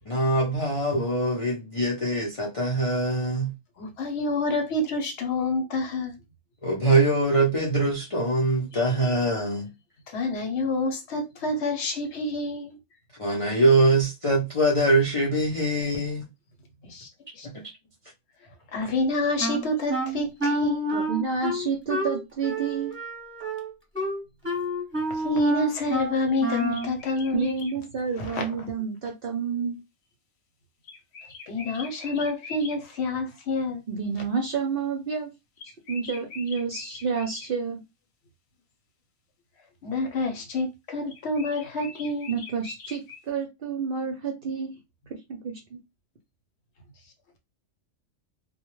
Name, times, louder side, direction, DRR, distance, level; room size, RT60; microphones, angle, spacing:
voice 1, 0.1-3.5 6.6-9.7 13.2-16.3 17.4-17.5, right 2 dB, 45° left, 0.4 m, -23 dB
voice 2, 3.8-6.1 8.7-9.2 10.1-12.8 16.8-17.1 17.3-17.7 18.7-20.9 25.1-27.5 28.2-28.7 31.5-33.8 39.8-42.3, left 2 dB, 60° left, 0.9 m, -28 dB
Wind instrument woodwind instrument, 19.4-26.9, right 1 dB, 10° right, 0.8 m, -29 dB
voice 3, 20.9-22.9 27.3-29.8 33.9-35.3 35.9-37.8 42.3-44.7 45.3-45.8, right 5 dB, 60° right, 0.6 m, -29 dB
sound 1, 26.3-27.8 30.8-32.8 35.6-37.5 41.1-43.2, left 4 dB, 90° left, 1.1 m, -43 dB
2.2 x 2.1 x 3.0 m
omnidirectional pair, 1.4 m